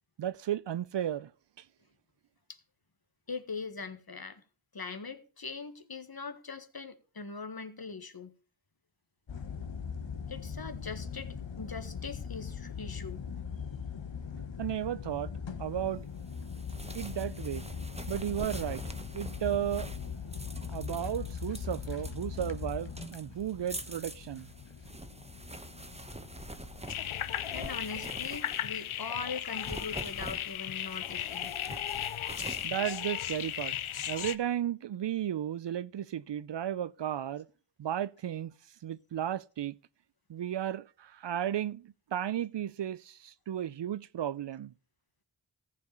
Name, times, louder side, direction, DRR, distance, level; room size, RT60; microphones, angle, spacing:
voice 1, 0.2-1.3 14.6-15.3 15.6-16.1 16.9-17.7 18.1-18.8 19.1-19.9 20.7-24.5 32.6-33.7 34.1-37.5 37.8-38.5 38.8-39.7 40.3-44.7, right 10 dB, 65° right, 0.5 m, -34 dB
voice 2, 3.3-4.4 4.7-8.3 10.3-13.2 27.5-31.6, left 4 dB, 50° left, 1.5 m, -41 dB
sound 1, 9.3-27.8, left 6 dB, 65° left, 1.4 m, -41 dB
sound 2, 16.3-28.9 29.4-33.7, right 2 dB, 15° right, 1.2 m, -46 dB
sound 3, 26.9-34.4, left 10 dB, 85° left, 0.7 m, -36 dB
14.5 x 5.2 x 6.9 m
cardioid pair, 40°, 48 cm